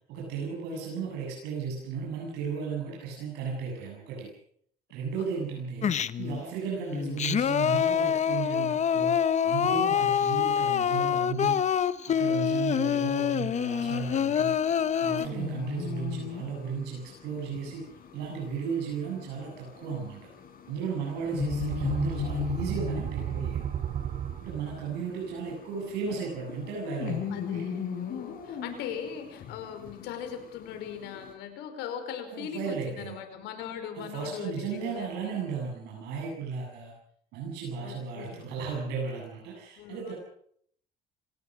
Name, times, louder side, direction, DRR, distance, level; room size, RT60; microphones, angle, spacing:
voice 1, 0.1-4.3 4.9-9.2 9.4-11.7 12.1-14.5 15.0-17.8 18.1-20.2 20.7-23.7 24.4-27.7 32.3-33.2 33.9-36.9 37.3-40.1, right 5 dB, 90° right, -2 dB, 7.9 m, -35 dB
Singing, 5.8-6.4 6.9-15.3, left 8 dB, 45° left, 1.1 m, -26 dB
sound 1, 13.8-31.3, left 8 dB, 60° left, 6.7 m, -39 dB
voice 2, 21.2-21.8 24.6-25.0 27.3-35.4 37.8-38.5 39.8-40.1, left 8 dB, 90° left, 7 dB, 5.2 m, -40 dB
sound 2, 21.3-25.1, right 10 dB, 50° right, 1.0 m, -34 dB
27.5 x 18.5 x 6.4 m, 0.67 s
cardioid pair, 110°, 17 cm